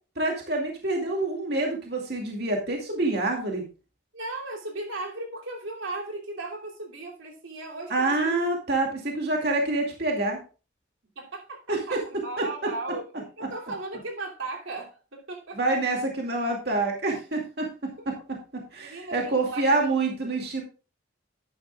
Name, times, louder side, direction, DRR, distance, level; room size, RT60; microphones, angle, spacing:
voice 1, 0.2-3.6 7.9-10.4 11.7-12.0 12.4-12.5 15.5-17.7 18.1-20.6, right 2 dB, 55° right, 1 dB, 2.3 m, -27 dB
voice 2, 4.1-8.4 11.2-15.8 18.0-18.1 18.8-19.8, right 2 dB, 85° right, 0 dB, 2.9 m, -37 dB
11.0 x 10.5 x 2.4 m, 0.33 s
head